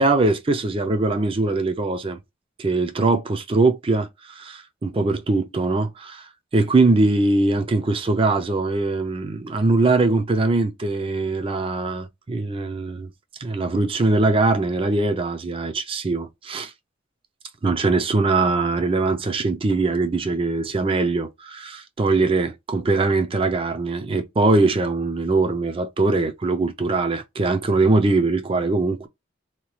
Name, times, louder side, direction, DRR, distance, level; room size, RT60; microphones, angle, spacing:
voice 1, 0.0-2.2 2.6-6.3 6.5-13.1 13.4-16.7 17.6-29.1, right 3 dB, 30° right, 0.4 m, -21 dB
2.9 x 2.2 x 3.0 m
head